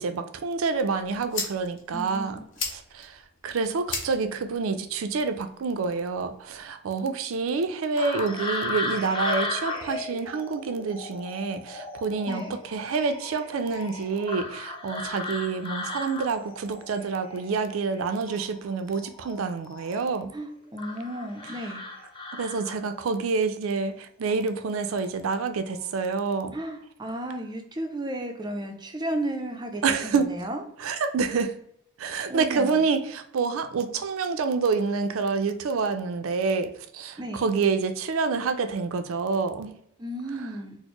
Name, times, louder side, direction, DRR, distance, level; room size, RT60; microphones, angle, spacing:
voice 1, 0.0-2.4 2.7-3.2 3.4-20.3 22.4-26.6 29.8-30.3 30.8-31.5 32.0-39.7, right 4 dB, 75° right, 9 dB, 0.4 m, -27 dB
sound 1, 0.7-6.7, left 4 dB, 60° left, 0.8 m, -39 dB
voice 2, 1.9-2.4 12.3-12.6 20.3-21.8 26.5-30.6 32.3-32.8 37.2-37.5 40.0-40.8, right 1 dB, 20° right, 4 dB, 0.4 m, -34 dB
sound 2, 8.0-18.0 18.3-20.2 20.8-23.0 24.2-24.5 24.9-25.4 25.7-26.0, left 3 dB, 25° left, 0.7 m, -36 dB
4.2 x 2.0 x 2.9 m, 0.71 s
head